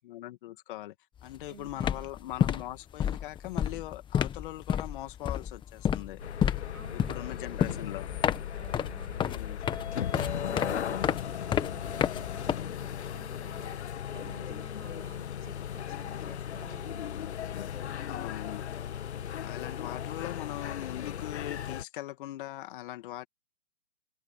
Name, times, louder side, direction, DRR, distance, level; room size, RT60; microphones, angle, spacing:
voice 1, 0.0-0.9 1.2-6.2 6.9-8.1 9.2-9.6 18.0-18.7 19.4-23.3, left 15 dB, 45° left, 2.5 m, -41 dB
sound 1, 1.2-1.4 1.7-13.1, left 9 dB, 15° left, 1.5 m, -31 dB
voice 2, 1.5-2.1 6.7-8.0 8.5-13.8 14.1-17.1, right 4 dB, 90° right, 7.9 m, -52 dB
sound 2, 6.2-21.8, left 9 dB, 60° left, 2.4 m, -36 dB
hypercardioid pair, 135°, 37 cm